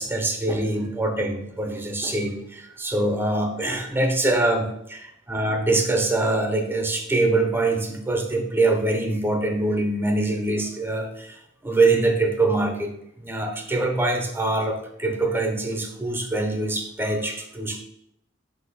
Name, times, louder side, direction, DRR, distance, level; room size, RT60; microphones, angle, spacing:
voice 1, 0.0-17.8, right 2 dB, 10° right, 4 dB, 0.5 m, -24 dB
4.1 x 2.5 x 3.9 m, 0.75 s
head